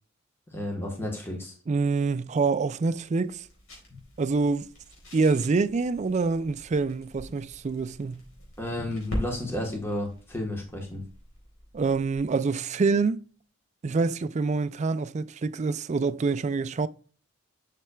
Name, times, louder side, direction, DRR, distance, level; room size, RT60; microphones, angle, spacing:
voice 1, 0.5-1.5 3.9-4.0 8.6-11.0, left 1 dB, 10° left, 1.2 m, -32 dB
sound 1, 1.7-12.4, equal, 85° left, 3.8 m, -43 dB
voice 2, 1.7-3.4 4.2-4.7 5.1-8.2 11.7-13.2 13.8-16.9, right 4 dB, 35° right, 0.4 m, -26 dB
7.4 x 6.6 x 2.3 m
head